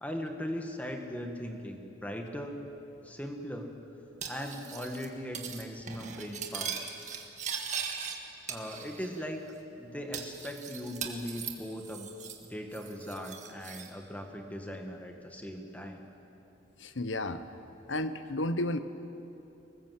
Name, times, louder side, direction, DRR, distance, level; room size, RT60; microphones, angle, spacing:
voice 1, 0.0-2.6 3.0-3.8 4.3-6.9 8.5-9.4 9.8-12.1 12.4-16.0, equal, 10° left, 3 dB, 1.8 m, -39 dB
Cutlery silverware, 4.2-5.1 5.3-5.6 5.9-8.2 8.5-9.2 9.5-9.6 10.1-12.5 12.7-13.9, right 7 dB, 40° right, 1.8 m, -39 dB
voice 2, 16.8-17.4 17.9-18.8, left 1 dB, 80° left, 11 dB, 1.1 m, -32 dB
24.5 x 20.5 x 7.8 m, 3.0 s
head